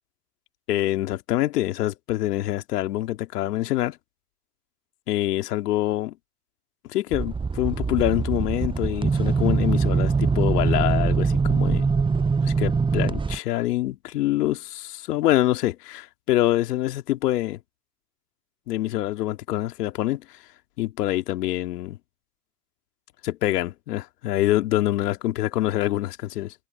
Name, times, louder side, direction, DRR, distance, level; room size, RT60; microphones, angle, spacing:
voice 1, 0.7-4.0 5.1-6.2 6.9-11.9 12.4-17.6 18.7-20.2 20.8-22.0 23.2-26.5, left 15 dB, 85° left, 2.4 m, -25 dB
sound 1, 7.1-13.4, right 5 dB, 10° right, 0.5 m, -23 dB
hypercardioid pair, 70°, 46 cm